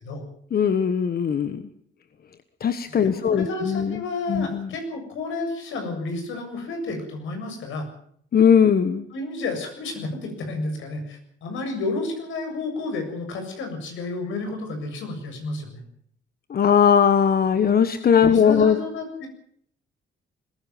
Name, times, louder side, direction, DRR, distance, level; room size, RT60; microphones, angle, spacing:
voice 1, 0.5-1.6 2.6-4.0 4.3-4.7 8.3-9.1 16.5-18.8, left 7 dB, 50° left, 10 dB, 1.5 m, -19 dB
voice 2, 2.9-7.9 9.1-15.8 18.2-19.3, left 3 dB, 80° left, 5 dB, 7.5 m, -31 dB
21.0 x 15.5 x 9.4 m, 0.65 s
cardioid pair, 85°, 20 cm